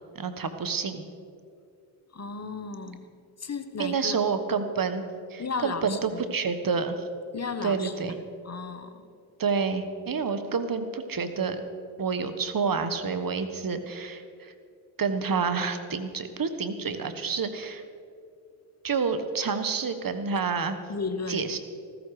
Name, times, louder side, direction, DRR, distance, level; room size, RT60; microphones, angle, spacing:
voice 1, 0.1-1.0 3.8-5.0 5.3-6.9 7.6-8.1 9.4-11.6 12.0-14.5 15.0-17.8 18.8-20.8 21.3-21.6, right 5 dB, 45° right, 9 dB, 1.5 m, -28 dB
voice 2, 2.1-3.1 3.4-4.2 5.4-6.4 7.3-8.2 8.4-9.0 20.9-21.5, left 4 dB, 35° left, 9 dB, 1.3 m, -34 dB
14.5 x 14.0 x 5.0 m, 2.4 s
supercardioid pair, 45°, 47 cm